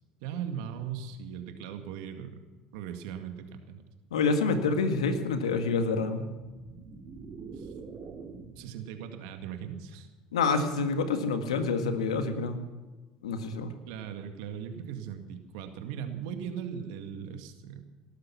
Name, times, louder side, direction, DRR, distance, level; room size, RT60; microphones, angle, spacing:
voice 1, 0.2-2.4 2.7-3.8 7.5-7.7 8.6-10.1 13.9-17.8, right 8 dB, 75° right, 7 dB, 2.1 m, -39 dB
voice 2, 4.1-6.3 10.3-12.6 13.2-13.7, left 4 dB, 90° left, 8 dB, 1.7 m, -27 dB
sound 1, 6.3-8.8, right 5 dB, 50° right, 2.5 m, -44 dB
18.5 x 12.5 x 5.8 m, 1.3 s
hypercardioid pair, 75°, 3 cm